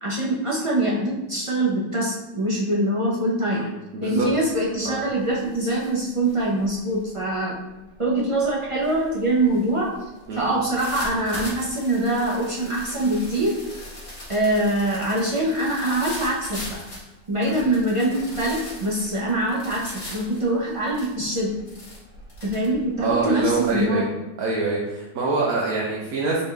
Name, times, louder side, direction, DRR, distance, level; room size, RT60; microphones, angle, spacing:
voice 1, 0.0-3.6 4.0-7.6 8.0-9.9 10.4-13.6 14.3-16.8 17.3-21.5 22.4-24.0, right 1 dB, 40° right, -5 dB, 0.4 m, -24 dB
voice 2, 3.5-4.3 4.8-5.0 10.3-10.4 17.5-17.6 23.0-24.0 24.4-26.4, right 3 dB, 75° right, -4 dB, 1.2 m, -25 dB
sound 1, 4.2-4.5 4.9-23.8, left 1 dB, 35° left, 1.4 m, -41 dB
4.2 x 3.5 x 3.2 m, 1.1 s
omnidirectional pair, 1.6 m